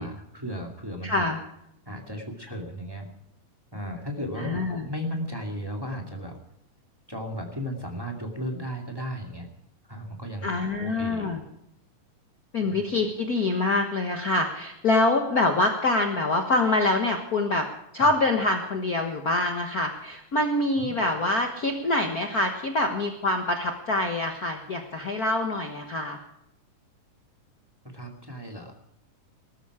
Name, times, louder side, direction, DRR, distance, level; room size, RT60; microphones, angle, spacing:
voice 1, 0.0-1.3 1.8-3.1 3.7-6.4 7.1-9.5 9.9-10.5 10.8-11.4 12.6-12.8 18.0-18.1 20.8-20.9 27.8-28.7, equal, 10° right, 2 dB, 1.8 m, -35 dB
voice 2, 1.0-1.4 4.4-4.9 10.4-11.4 12.5-17.7 17.9-26.2, left 2 dB, 60° left, 4 dB, 0.9 m, -25 dB
19.5 x 13.5 x 4.9 m, 0.79 s
omnidirectional pair, 3.7 m